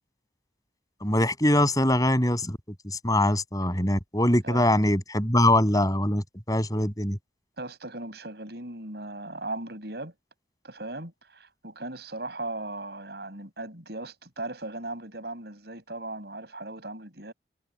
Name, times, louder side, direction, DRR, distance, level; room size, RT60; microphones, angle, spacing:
voice 1, 1.0-2.6 2.8-7.2, left 1 dB, 20° left, 7.7 m, -23 dB
voice 2, 4.4-4.8 7.6-10.1 10.6-17.3, right 2 dB, 60° right, 7.5 m, -38 dB
head